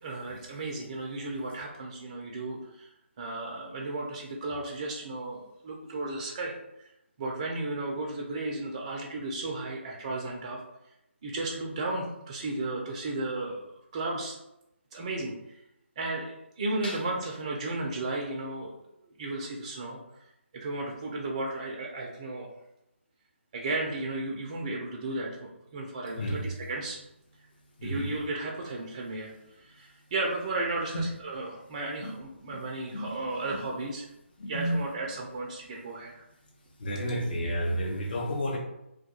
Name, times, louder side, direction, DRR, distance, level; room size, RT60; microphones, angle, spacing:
voice 1, 0.0-2.9 3.2-6.9 7.2-10.7 11.2-14.4 14.9-15.3 16.0-18.7 19.0-20.0 20.5-22.5 23.5-27.0 27.8-29.3 29.6-34.1 34.5-36.2, right 2 dB, 30° right, -1 dB, 0.3 m, -34 dB
voice 2, 26.2-26.5 27.8-28.1 30.9-31.1 32.0-32.1 32.5-32.6 32.9-33.1 33.5-33.7 34.4-34.8 36.8-38.6, equal, 45° left, 0 dB, 0.6 m, -31 dB
2.2 x 2.2 x 2.8 m, 0.84 s
figure-of-eight pair, 150°, 7 cm